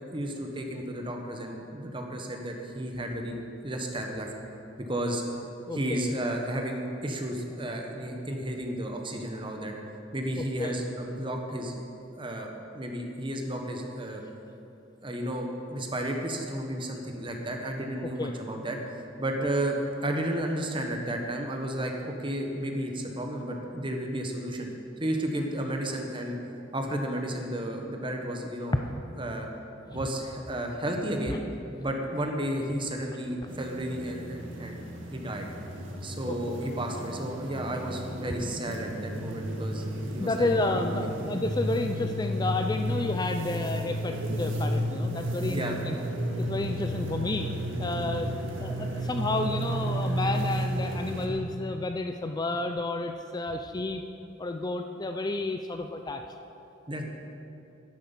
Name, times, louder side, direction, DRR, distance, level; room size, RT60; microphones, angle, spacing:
voice 1, 0.1-4.3 4.8-5.2 5.7-9.7 10.1-11.7 12.1-14.2 15.0-24.7 25.0-26.4 26.7-28.8 29.2-29.5 29.9-31.4 31.8-34.8 35.1-35.5 36.0-41.1 45.5-45.8 56.9-57.0, right 1 dB, 25° right, 2 dB, 1.3 m, -32 dB
voice 2, 5.6-6.2 10.4-10.8 18.0-18.3 28.7-28.8 29.9-30.0 31.3-31.4 36.3-36.6 40.2-46.0 46.4-48.3 48.6-54.0 54.4-56.2, left 2 dB, 20° left, 6 dB, 0.4 m, -31 dB
sound 1, 33.5-51.3, equal, 80° right, 1.7 m, -33 dB
11.0 x 9.7 x 7.1 m, 2.8 s
head